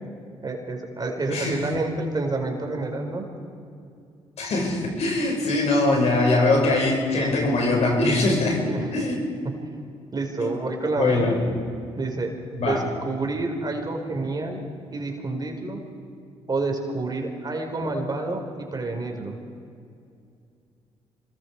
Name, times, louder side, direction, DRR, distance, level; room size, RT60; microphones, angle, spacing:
voice 1, 0.4-3.2 8.7-9.3 10.1-11.3 12.0-14.6 14.9-15.8 16.5-19.4, right 2 dB, 35° right, 2 dB, 4.8 m, -29 dB
voice 2, 4.4-8.6 8.9-9.2 10.4-10.5 11.0-11.4 12.6-12.8, left 2 dB, 65° left, 0 dB, 5.9 m, -22 dB
26.5 x 21.5 x 4.9 m, 2.5 s
supercardioid pair, 60°, 12 cm